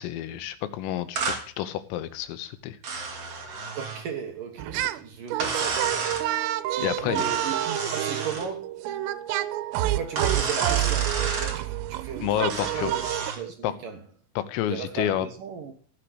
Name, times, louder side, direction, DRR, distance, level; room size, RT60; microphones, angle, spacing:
voice 1, 0.0-2.8 6.8-7.2 12.2-12.9 13.6-13.7 14.4-15.3, left 12 dB, 90° left, 3.8 m, -29 dB
sound 1, 1.2-1.4 2.8-4.0 5.4-6.3 7.1-8.5 10.2-11.6 12.5-13.4, right 4 dB, 40° right, 2.9 m, -31 dB
voice 2, 3.7-6.5 6.8-8.9 9.8-13.1 13.4-14.0 14.7-15.7, right 7 dB, 60° right, 2.3 m, -36 dB
sound 2, 4.6-5.0 5.3-13.3, right 14 dB, 90° right, 3.5 m, -28 dB
16.5 x 7.6 x 8.1 m
omnidirectional pair, 5.8 m